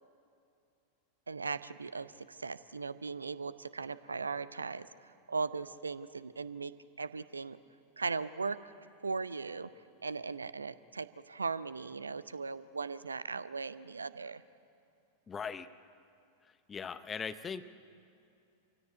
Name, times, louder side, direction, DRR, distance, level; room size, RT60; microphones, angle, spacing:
voice 1, 1.3-4.9 5.3-6.7 7.0-7.6 8.0-8.6 9.0-9.7 10.0-14.4, right 4 dB, 75° right, 16 dB, 0.7 m, -38 dB
voice 2, 15.3-15.7 16.7-17.6, left 6 dB, 20° left, 12 dB, 0.8 m, -39 dB
26.5 x 17.0 x 9.4 m, 2.5 s
figure-of-eight pair, 90°, 0 cm